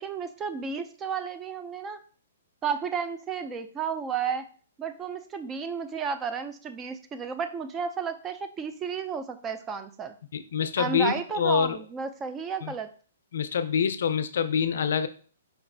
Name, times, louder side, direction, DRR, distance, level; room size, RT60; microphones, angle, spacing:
voice 1, 0.0-2.0 2.6-4.4 4.8-10.1 10.8-12.9, right 6 dB, 15° right, 9 dB, 0.3 m, -32 dB
voice 2, 10.3-11.8 12.6-12.7 13.3-15.1, left 7 dB, 70° left, 11 dB, 0.4 m, -26 dB
4.3 x 2.9 x 2.6 m, 0.42 s
hypercardioid pair, 150°, 0 cm